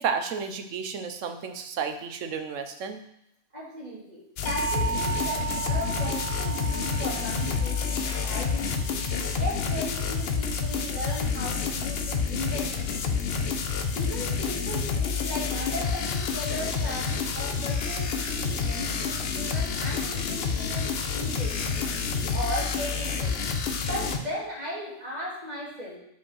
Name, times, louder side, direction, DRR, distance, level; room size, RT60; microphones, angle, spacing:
voice 1, 0.0-3.0, right 6 dB, 70° right, 7 dB, 1.0 m, -32 dB
voice 2, 3.5-9.0 9.4-13.1 13.9-21.8 22.3-23.4 23.8-26.0, equal, 30° right, -4 dB, 2.1 m, -37 dB
sound 1, 4.4-24.2, left 5 dB, 55° left, 0.8 m, -29 dB
sound 2, 4.5-10.4, right 7 dB, 70° left, 1.5 m, -35 dB
5.4 x 5.1 x 6.2 m, 0.77 s
omnidirectional pair, 1.4 m